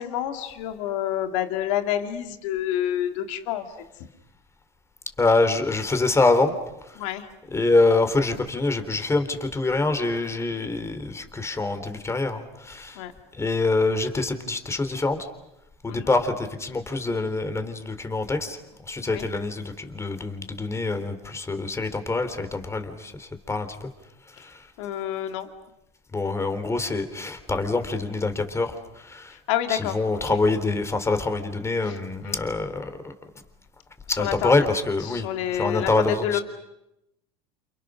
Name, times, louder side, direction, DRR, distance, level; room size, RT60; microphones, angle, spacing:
voice 1, 0.0-3.9 7.0-7.3 13.0-13.1 15.9-16.1 19.1-19.2 24.8-25.5 29.3-30.0 30.3-30.4 31.9-32.0 32.2-32.4 34.1-34.5 35.1-36.4, left 11 dB, 75° left, 7 dB, 2.6 m, -28 dB
voice 2, 5.2-6.5 6.8-7.0 7.5-13.0 13.3-15.3 15.8-23.9 24.3-24.7 26.1-29.4 29.7-33.1 34.1-36.4, left 3 dB, 15° left, 8 dB, 3.7 m, -25 dB
29.0 x 28.5 x 6.5 m, 0.88 s
hypercardioid pair, 90°, 16 cm